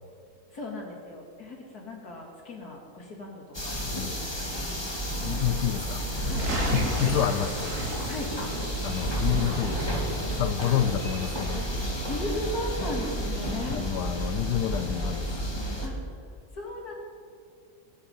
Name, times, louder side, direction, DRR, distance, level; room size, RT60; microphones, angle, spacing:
voice 1, 0.5-3.8 4.2-4.8 6.3-6.7 8.1-8.3 10.6-10.8 12.0-13.8 15.8-16.9, left 1 dB, 70° left, -1 dB, 3.6 m, -37 dB
sound 1, 3.5-15.9, equal, 15° left, 2.0 m, -32 dB
sound 2, 5.0-10.5, right 3 dB, 90° right, 1.8 m, -44 dB
voice 2, 5.2-6.0 6.7-7.7 8.8-10.0 10.4-11.7 13.7-15.4, left 11 dB, 85° left, 9 dB, 1.2 m, -28 dB
sound 3, 6.1-8.6 9.1-10.3, right 1 dB, 65° right, 3.2 m, -31 dB
22.5 x 8.9 x 5.8 m, 2.3 s
omnidirectional pair, 1.7 m